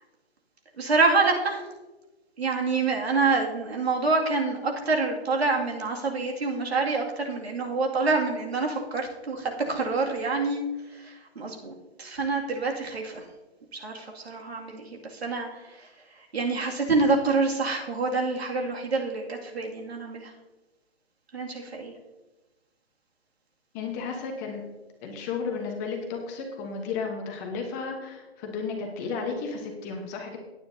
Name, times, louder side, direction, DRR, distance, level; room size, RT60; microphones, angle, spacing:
voice 1, 0.8-1.6 2.4-13.2 13.7-15.9 16.3-20.3 21.3-21.9, right 3 dB, 70° right, 0 dB, 2.4 m, -27 dB
voice 2, 23.7-24.6 25.0-30.4, left 5 dB, 15° left, 2 dB, 1.0 m, -33 dB
17.5 x 9.3 x 2.7 m, 1.1 s
hypercardioid pair, 155°, 32 cm